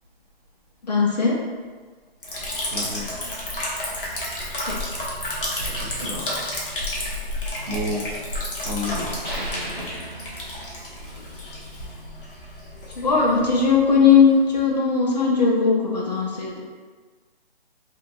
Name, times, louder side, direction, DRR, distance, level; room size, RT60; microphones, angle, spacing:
voice 1, 0.8-1.4 4.7-4.8 13.0-16.6, left 5 dB, 45° left, -2 dB, 0.6 m, -19 dB
Liquid, 2.2-14.7, left 1 dB, 60° left, 1.0 m, -31 dB
voice 2, 2.7-3.1 5.7-6.3 7.7-8.1 8.6-10.1, left 1 dB, 35° right, -6 dB, 0.6 m, -32 dB
sound 1, 9.2-10.8, equal, 15° left, 1.1 m, -37 dB
3.4 x 2.7 x 2.5 m, 1.4 s
hypercardioid pair, 170°, 31 cm